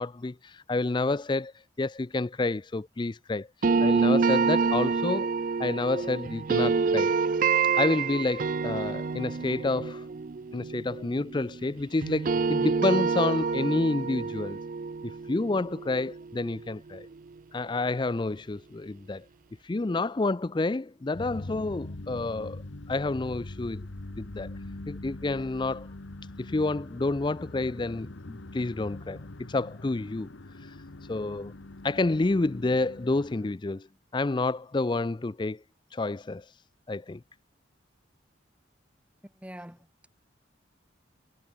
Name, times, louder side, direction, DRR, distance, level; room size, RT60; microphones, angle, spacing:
voice 1, 0.0-1.5 1.8-3.5 3.8-5.3 5.6-7.2 7.7-10.1 10.5-14.6 15.0-17.1 17.5-19.2 19.6-22.6 22.9-23.9 24.2-24.5 24.9-25.9 26.4-29.2 29.5-30.3 30.6-30.7 31.1-31.5 31.8-33.9 34.1-35.6 35.9-36.5 36.9-37.2, left 2 dB, 25° left, 0.4 m, -29 dB
sound 1, 3.6-11.7 12.0-17.0, right 5 dB, 45° right, 0.4 m, -27 dB
sound 2, 21.1-33.5, left 2 dB, 75° left, 1.3 m, -43 dB
voice 2, 39.2-40.1, equal, 5° right, 2.8 m, -45 dB
head